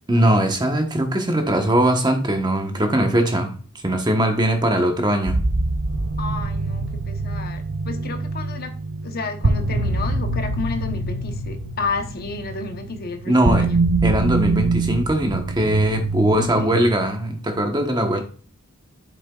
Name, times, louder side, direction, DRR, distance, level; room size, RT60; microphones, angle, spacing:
voice 1, 0.1-3.5 3.8-5.4 13.3-13.7 14.0-18.2, right 1 dB, 20° right, 1.1 m, -20 dB
sound 1, 5.3-16.8, right 2 dB, 60° right, 0.7 m, -24 dB
voice 2, 6.2-8.8 9.0-13.8 16.4-16.7, left 3 dB, 45° left, 0.9 m, -31 dB
8.3 x 6.7 x 2.4 m
head